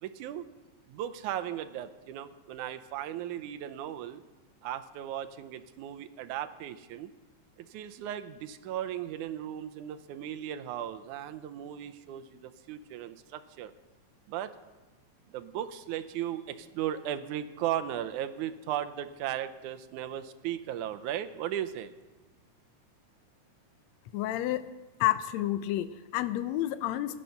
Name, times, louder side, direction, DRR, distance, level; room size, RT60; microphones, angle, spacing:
voice 1, 0.0-0.5 0.9-4.2 4.6-7.1 7.6-13.7 14.3-14.5 15.3-21.9, right 11 dB, 85° right, 10 dB, 2.2 m, -36 dB
voice 2, 24.1-24.6 25.0-27.2, left 14 dB, 75° left, 13 dB, 1.8 m, -30 dB
17.5 x 11.0 x 5.7 m, 1.2 s
omnidirectional pair, 3.4 m